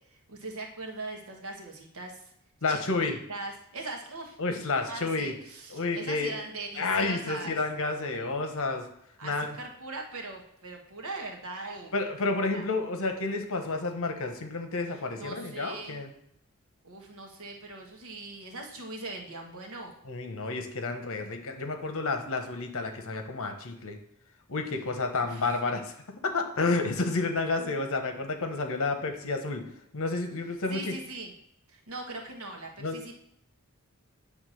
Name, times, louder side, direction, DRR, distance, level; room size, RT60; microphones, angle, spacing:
voice 1, 0.1-2.3 2.7-4.4 4.9-7.6 9.2-11.9 12.5-12.6 14.9-16.0 16.8-19.9 25.1-25.5 30.7-31.3 31.7-33.1, right 2 dB, 65° right, 1 dB, 1.5 m, -40 dB
voice 2, 2.6-3.2 4.4-5.3 5.7-6.3 6.8-8.8 9.2-9.5 11.9-16.1 20.1-24.0 24.5-25.9 26.2-29.6 29.9-30.9 32.8-33.0, left 3 dB, 65° left, 5 dB, 1.2 m, -30 dB
8.9 x 3.5 x 6.5 m, 0.73 s
head